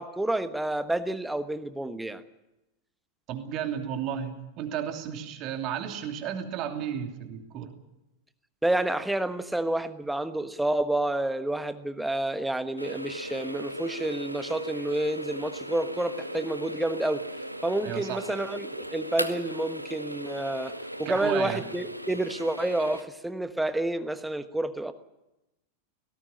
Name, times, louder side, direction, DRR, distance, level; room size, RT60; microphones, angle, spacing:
voice 1, 0.0-2.2 8.6-17.3 17.6-24.9, right 1 dB, 5° right, 11 dB, 1.3 m, -29 dB
voice 2, 3.3-7.7 17.8-18.2 21.0-21.6, right 9 dB, 40° right, 5 dB, 2.8 m, -33 dB
sound 1, 12.8-23.0, right 1 dB, 90° right, 1.2 m, -37 dB
18.0 x 17.5 x 9.7 m, 0.94 s
figure-of-eight pair, 90°, 0 cm